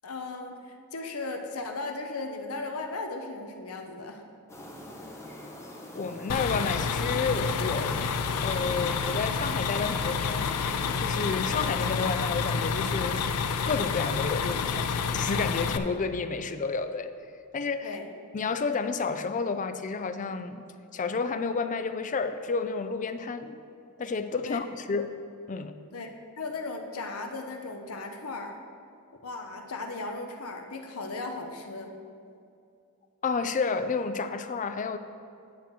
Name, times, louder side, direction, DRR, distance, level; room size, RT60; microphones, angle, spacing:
voice 1, 0.0-4.2 17.8-18.1 24.4-24.6 25.9-28.6 29.2-31.9, left 3 dB, 70° left, 4 dB, 0.9 m, -36 dB
sound 1, 4.5-12.1, left 1 dB, 15° left, 1.0 m, -43 dB
voice 2, 5.9-8.0 8.4-10.5 11.0-13.3 13.7-17.1 17.5-18.0 18.3-20.6 20.9-23.6 24.0-25.1 25.5-25.7 33.2-35.0, left 4 dB, 35° left, 10 dB, 0.4 m, -30 dB
sound 2, 6.3-15.8, left 5 dB, 90° left, 0.5 m, -29 dB
9.3 x 7.6 x 4.4 m, 2.5 s
head